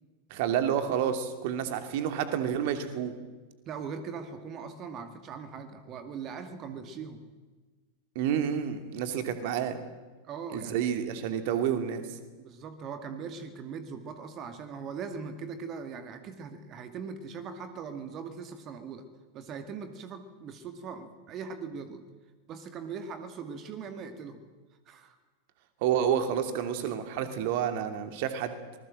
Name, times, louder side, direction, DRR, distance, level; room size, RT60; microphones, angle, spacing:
voice 1, 0.3-3.1 8.1-9.8 10.5-12.0 25.8-28.5, right 9 dB, 50° right, 8 dB, 2.7 m, -29 dB
voice 2, 3.7-7.2 10.2-10.8 12.4-19.1 19.3-22.0 22.5-24.4 24.9-25.2, right 5 dB, 35° right, 8 dB, 2.2 m, -40 dB
25.5 x 20.5 x 7.6 m, 1.3 s
figure-of-eight pair, 90°, 0 cm